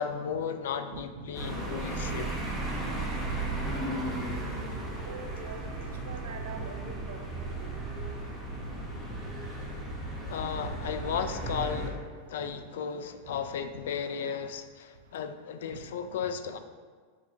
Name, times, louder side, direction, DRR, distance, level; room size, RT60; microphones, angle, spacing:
voice 1, 0.0-2.3 10.3-12.0 12.3-16.6, left 7 dB, 80° left, 9 dB, 0.3 m, -34 dB
voice 2, 0.9-1.4 5.0-5.7 6.1-7.8 10.6-11.0 11.7-12.6 13.3-13.4 13.7-13.8 15.7-16.0 16.5-16.6, right 4 dB, 90° right, 4 dB, 0.5 m, -45 dB
sound 1, 1.3-11.9, right 2 dB, 5° left, 0.7 m, -35 dB
6.3 x 2.6 x 2.7 m, 1.6 s
supercardioid pair, 155°, 0 cm